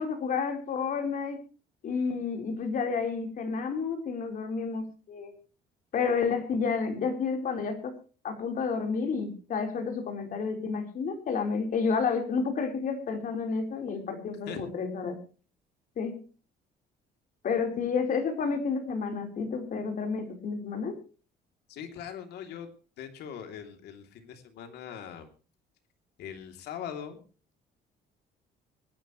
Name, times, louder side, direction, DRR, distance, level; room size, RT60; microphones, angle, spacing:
voice 1, 0.0-1.4 1.8-5.3 5.9-7.9 8.2-15.1 16.0-16.2 17.4-21.0, left 5 dB, 55° left, 5 dB, 4.2 m, -30 dB
voice 2, 21.7-22.7 23.0-25.3 26.2-27.2, left 8 dB, 75° left, 6 dB, 3.0 m, -41 dB
24.5 x 10.5 x 3.1 m, 0.37 s
cardioid pair, 110°, 17 cm